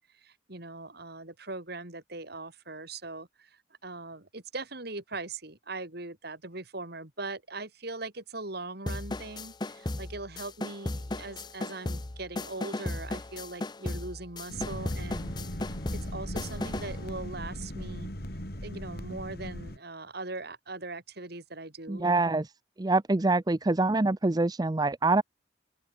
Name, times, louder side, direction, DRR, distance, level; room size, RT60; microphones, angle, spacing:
voice 1, 0.1-15.4 15.7-15.8 16.0-18.1 18.6-22.1, right 3 dB, 55° right, 3.6 m, -40 dB
sound 1, 8.9-17.0, left 2 dB, 20° left, 0.7 m, -36 dB
sound 2, 14.5-19.8, equal, 55° left, 5.8 m, -38 dB
voice 2, 21.9-22.5 22.8-25.2, right 2 dB, 20° right, 0.5 m, -25 dB
open air
head